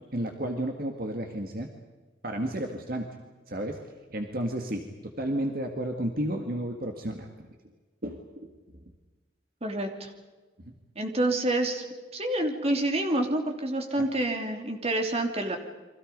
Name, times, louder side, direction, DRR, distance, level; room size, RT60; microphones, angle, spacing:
voice 1, 0.1-1.7 2.2-3.2 3.5-3.8 4.1-7.3 8.0-8.5 10.6-10.8 14.0-14.1, right 1 dB, 55° right, 3 dB, 2.1 m, -32 dB
voice 2, 9.6-10.1 10.9-11.9 12.1-15.6, right 1 dB, 35° right, 4 dB, 3.0 m, -28 dB
30.0 x 24.5 x 5.4 m, 1.3 s
head